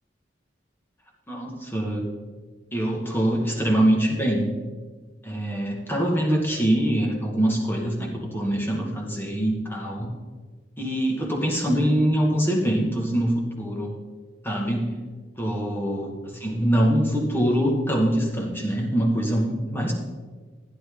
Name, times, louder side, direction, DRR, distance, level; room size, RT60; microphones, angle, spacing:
voice 1, 1.3-2.1 2.7-4.5 5.2-10.1 10.8-13.9 14.4-15.0 15.4-19.9, right 1 dB, 10° left, -1 dB, 2.2 m, -24 dB
15.5 x 9.9 x 4.0 m, 1.4 s
head